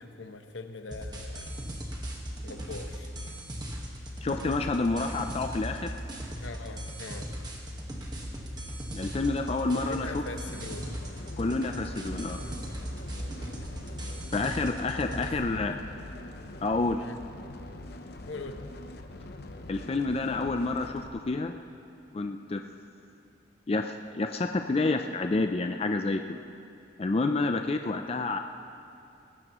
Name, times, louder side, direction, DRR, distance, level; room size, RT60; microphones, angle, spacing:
voice 1, 0.0-1.5 2.4-3.1 6.4-7.3 9.7-11.0 15.2-15.8 17.0-17.2 18.3-18.6, left 3 dB, 75° left, 6 dB, 0.9 m, -42 dB
sound 1, 0.9-15.3, equal, 20° right, 1.5 m, -38 dB
voice 2, 4.2-6.0 8.9-10.2 11.4-12.4 14.3-15.7 16.6-17.0 19.7-21.5 22.1-22.6 23.7-26.4 27.0-28.4, left 3 dB, 30° left, 5 dB, 0.4 m, -29 dB
sound 2, 10.4-21.1, left 1 dB, 55° left, 0.8 m, -43 dB
19.0 x 15.5 x 3.1 m, 2.6 s
head